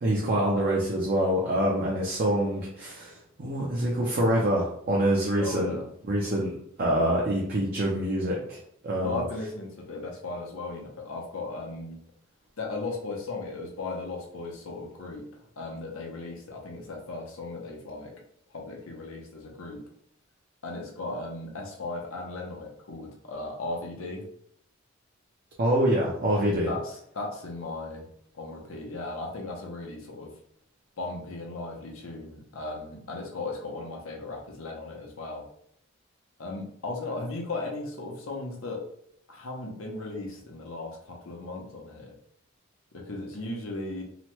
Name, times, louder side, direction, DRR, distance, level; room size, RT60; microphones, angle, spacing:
voice 1, 0.0-5.8 6.1-8.6 8.8-9.2 25.6-26.7, right 1 dB, 45° right, -3 dB, 0.5 m, -26 dB
voice 2, 5.4-5.8 9.0-12.0 12.6-15.3 15.6-18.1 18.5-19.8 20.6-24.3 26.3-28.1 28.3-30.3 31.0-35.4 36.4-38.9 39.3-42.1 42.9-44.0, left 2 dB, 80° left, 0 dB, 0.7 m, -36 dB
2.9 x 2.2 x 3.0 m, 0.68 s
head